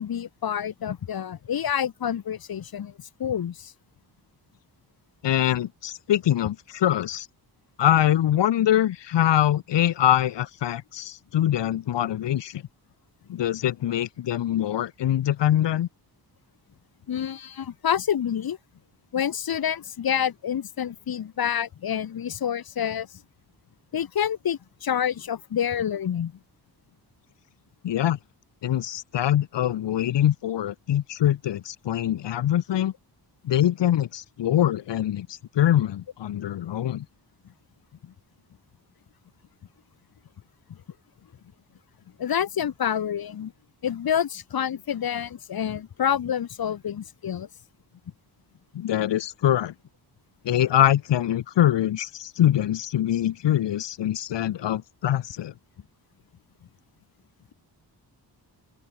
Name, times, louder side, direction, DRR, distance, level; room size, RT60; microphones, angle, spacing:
voice 1, 0.0-2.9 3.2-3.7 17.1-18.6 19.1-23.1 23.9-26.3 38.0-38.1 40.7-40.8 42.2-43.5 43.8-47.5, left 9 dB, 60° left, 2.4 m, -28 dB
voice 2, 5.2-7.3 7.8-12.6 13.3-15.9 27.8-28.2 28.6-32.9 33.4-37.0 48.7-49.7 50.4-55.5, left 12 dB, 85° left, 1.6 m, -23 dB
open air
wide cardioid pair, 170°, 41 cm